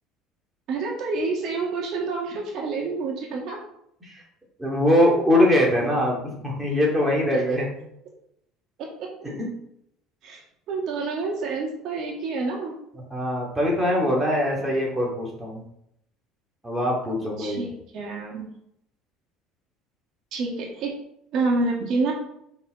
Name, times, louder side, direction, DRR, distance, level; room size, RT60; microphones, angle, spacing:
voice 1, 0.7-3.6 7.3-7.4 10.2-10.4 10.7-12.8 17.4-18.5 20.3-20.9 21.3-22.1, right 3 dB, 55° right, -1 dB, 2.0 m, -28 dB
voice 2, 4.6-7.7 9.2-9.5 12.9-15.6 16.6-17.6, left 1 dB, 10° right, -3 dB, 2.5 m, -22 dB
5.8 x 5.3 x 4.9 m, 0.75 s
cardioid pair, 130°, 0 cm